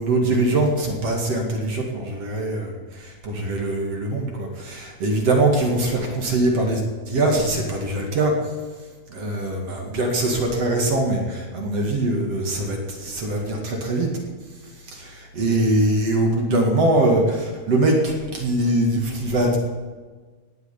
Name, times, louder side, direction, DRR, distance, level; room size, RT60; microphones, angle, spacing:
voice 1, 0.0-6.8 7.1-8.3 9.1-14.1 14.9-19.6, right 2 dB, 45° right, 1 dB, 2.9 m, -22 dB
18.5 x 9.0 x 8.4 m, 1.4 s
omnidirectional pair, 4.3 m